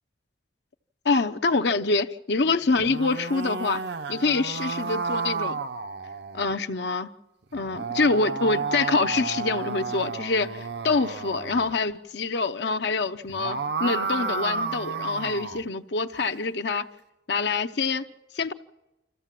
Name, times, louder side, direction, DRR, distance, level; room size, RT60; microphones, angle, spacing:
voice 1, 1.0-3.8 4.1-5.6 6.3-7.1 7.5-16.8 17.3-18.0 18.3-18.5, left 3 dB, 65° left, 0.7 m, -25 dB
sound 1, 2.7-6.5 7.5-11.7 13.2-15.7, right 4 dB, 60° right, 0.8 m, -32 dB
26.0 x 15.0 x 7.5 m
head